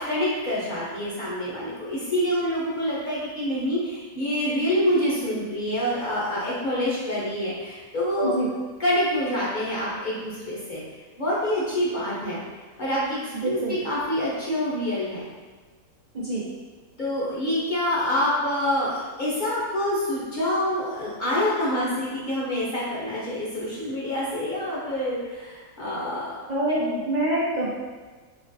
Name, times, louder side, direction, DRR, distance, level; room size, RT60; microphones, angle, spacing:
voice 1, 0.0-8.3 8.8-10.8 11.2-12.4 12.8-15.2 17.0-26.5 26.8-27.0, left 1 dB, 45° left, -7 dB, 0.7 m, -26 dB
voice 2, 13.4-13.7 16.1-16.4 26.5-27.7, right 1 dB, 85° right, -8 dB, 0.3 m, -25 dB
3.8 x 3.0 x 2.6 m, 1.4 s
omnidirectional pair, 1.5 m